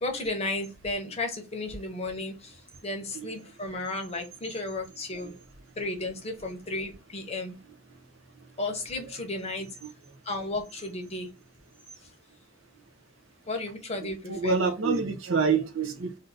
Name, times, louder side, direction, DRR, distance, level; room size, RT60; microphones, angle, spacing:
voice 1, 0.0-5.3 5.8-7.6 8.6-9.7 10.2-11.3 13.5-14.6, left 2 dB, 30° left, 0.8 m, -34 dB
voice 2, 14.0-16.2, right 5 dB, 65° right, 0.7 m, -27 dB
2.6 x 2.5 x 3.6 m
head